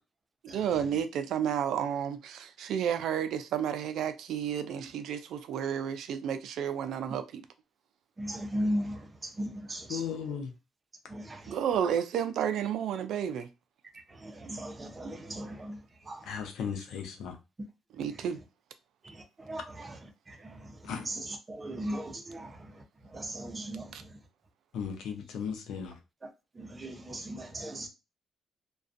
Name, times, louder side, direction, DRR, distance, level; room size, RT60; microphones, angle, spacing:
voice 1, 0.5-7.4 11.5-13.5 18.0-18.4 23.9-24.0, right 9 dB, 80° right, 0.3 m, -31 dB
voice 2, 8.2-10.0 11.1-11.6 14.2-15.8 16.1-16.3 19.0-20.0 20.3-22.7 23.1-23.9 26.6-27.9, equal, 25° right, 0.6 m, -37 dB
voice 3, 9.9-10.5 16.3-17.3 20.9-21.1 24.7-25.9, left 7 dB, 85° left, 0.6 m, -36 dB
2.4 x 2.2 x 2.5 m
cardioid pair, 90°, 0 cm